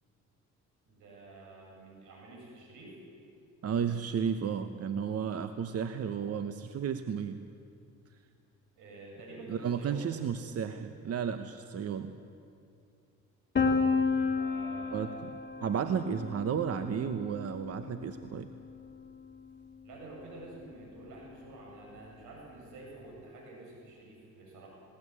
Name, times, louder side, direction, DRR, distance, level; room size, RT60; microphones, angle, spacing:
voice 1, 0.9-3.0 8.8-10.1 14.1-15.3 19.8-24.7, right 2 dB, 90° right, -1 dB, 8.0 m, -49 dB
voice 2, 3.6-7.4 9.5-12.2 14.9-15.3 15.6-18.5, right 7 dB, 55° right, 9 dB, 1.0 m, -33 dB
Piano, 13.6-19.3, left 4 dB, 35° left, 2.5 m, -32 dB
19.5 x 18.0 x 9.8 m, 2.4 s
cardioid pair, 90°, 30 cm